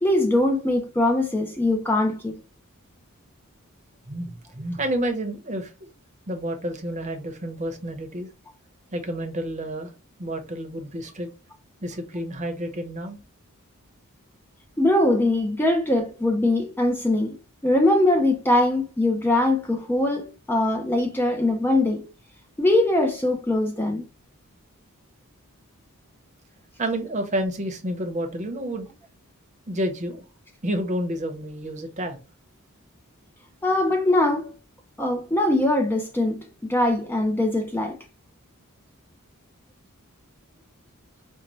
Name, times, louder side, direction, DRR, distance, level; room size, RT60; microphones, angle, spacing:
voice 1, 0.0-2.4 14.8-17.4 17.6-22.1 22.6-24.0 33.6-34.5 35.0-38.0, left 1 dB, 10° left, 0.3 m, -22 dB
voice 2, 4.1-5.7 6.3-8.3 8.9-9.9 10.2-11.3 11.8-13.2 26.8-28.9 29.7-30.2 30.6-32.2, right 1 dB, 30° right, 0.7 m, -29 dB
5.1 x 2.1 x 3.0 m
head